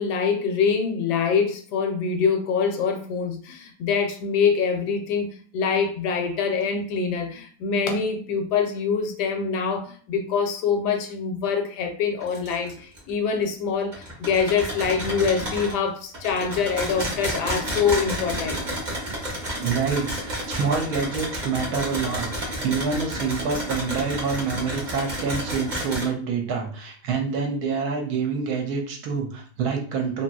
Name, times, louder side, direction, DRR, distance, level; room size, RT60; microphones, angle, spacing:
voice 1, 0.0-18.6, left 6 dB, 80° left, 4 dB, 1.2 m, -25 dB
sound 1, 12.2-13.0 13.4-13.5 13.9-15.7 16.1-26.1, right 1 dB, 40° right, 0.8 m, -31 dB
voice 2, 19.6-30.2, right 5 dB, 75° right, 2 dB, 1.1 m, -27 dB
2.8 x 2.8 x 2.3 m, 0.44 s
omnidirectional pair, 1.8 m